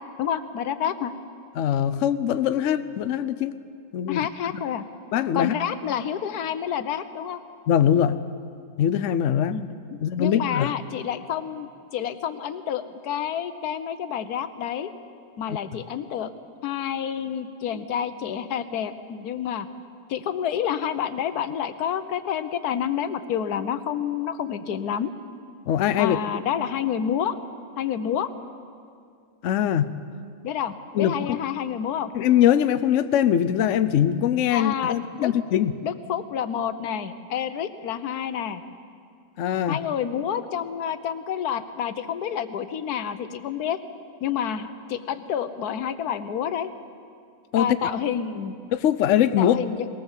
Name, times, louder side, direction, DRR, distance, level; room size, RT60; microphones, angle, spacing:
voice 1, 0.2-1.1 4.1-4.8 5.3-7.4 9.5-9.7 10.2-14.9 15.4-16.3 16.6-19.7 20.1-25.1 26.0-27.4 27.8-28.3 30.4-32.1 34.5-35.3 35.8-38.6 39.7-43.8 44.2-46.7 47.6-48.6 49.4-49.9, left 9 dB, 85° left, 11 dB, 1.4 m, -29 dB
voice 2, 1.6-3.5 3.9-4.3 4.5-4.6 5.1-5.5 7.7-8.2 8.8-9.6 10.0-10.7 25.7-26.2 29.4-29.9 30.9-31.4 32.1-35.7 39.4-39.8 47.5-47.7 48.7-49.6, left 10 dB, 60° left, 12 dB, 0.9 m, -22 dB
20.5 x 18.0 x 7.3 m, 2.3 s
omnidirectional pair, 1.6 m